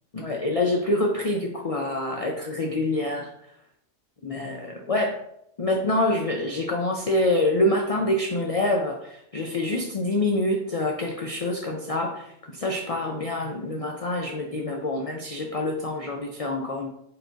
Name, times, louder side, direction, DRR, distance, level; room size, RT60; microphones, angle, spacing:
voice 1, 0.1-3.3 4.2-5.2 5.6-16.9, left 1 dB, 60° left, 1 dB, 0.3 m, -26 dB
4.7 x 2.5 x 4.4 m, 0.76 s
omnidirectional pair, 1.3 m